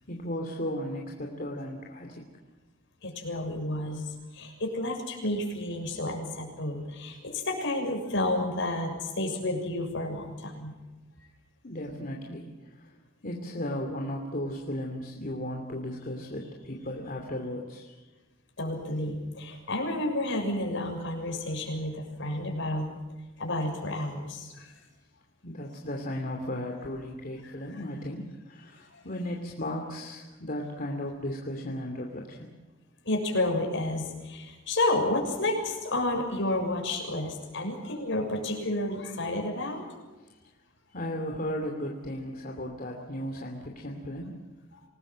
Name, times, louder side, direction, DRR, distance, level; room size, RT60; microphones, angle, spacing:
voice 1, 0.1-2.3 11.6-13.0 13.2-18.1 25.4-32.5 40.2-40.4 40.9-44.3, left 1 dB, 45° left, 1 dB, 2.8 m, -35 dB
voice 2, 3.0-10.7 18.6-22.9 23.4-24.7 28.9-29.0 33.0-39.8, left 1 dB, 65° left, 2 dB, 6.8 m, -31 dB
27.0 x 19.5 x 7.6 m, 1.2 s
head